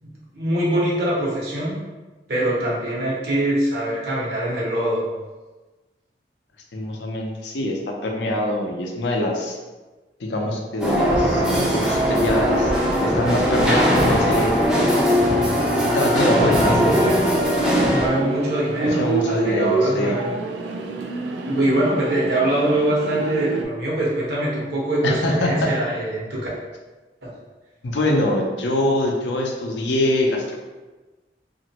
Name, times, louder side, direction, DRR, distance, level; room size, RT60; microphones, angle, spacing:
voice 1, 0.0-1.8 2.3-5.0 16.4-17.2 17.9-20.3 21.4-26.4 27.2-27.3, right 1 dB, 60° right, -6 dB, 1.0 m, -23 dB
voice 2, 6.7-9.6 10.2-12.7 13.0-14.6 15.8-16.8 18.8-20.2 25.0-25.7 27.8-30.6, left 1 dB, 80° left, 1 dB, 0.5 m, -24 dB
sound 1, 10.8-18.1, equal, 5° right, 0.4 m, -19 dB
sound 2, 12.5-13.6 13.9-14.0 14.6-23.6, right 3 dB, 80° right, 0.3 m, -29 dB
2.9 x 2.5 x 2.9 m, 1.2 s
head